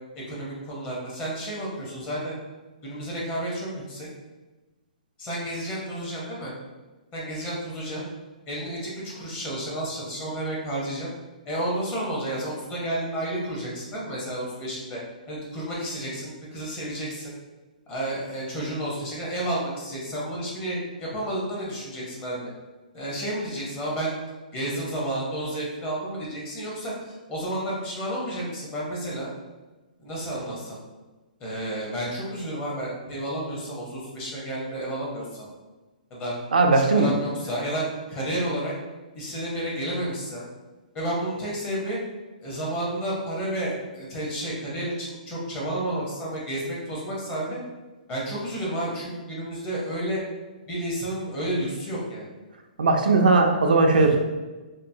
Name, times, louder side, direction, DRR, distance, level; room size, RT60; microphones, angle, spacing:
voice 1, 0.3-2.3 2.8-4.1 5.2-6.5 7.1-8.0 8.5-11.1 11.5-15.0 15.3-17.3 17.9-22.5 22.9-24.1 24.5-29.3 30.0-30.8 31.4-35.5 36.1-36.3 36.7-38.7 39.1-40.4 40.9-42.0 42.4-47.6 48.1-50.2 50.7-52.3 53.9-54.2, right 1 dB, 25° left, -4 dB, 0.8 m, -31 dB
voice 2, 36.5-37.1 52.8-54.2, right 3 dB, 85° right, 3 dB, 0.4 m, -18 dB
2.8 x 2.0 x 2.6 m, 1.2 s
hypercardioid pair, 145°, 5 cm